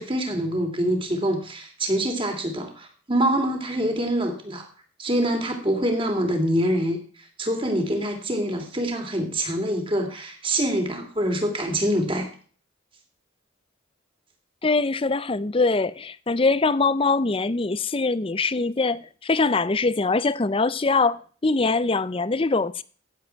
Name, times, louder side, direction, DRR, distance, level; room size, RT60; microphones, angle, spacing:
voice 1, 0.0-4.7 5.0-7.0 7.4-12.3, right 1 dB, 25° right, 3.1 m, -25 dB
voice 2, 14.6-22.8, left 3 dB, 25° left, 0.5 m, -23 dB
16.0 x 7.7 x 4.6 m
head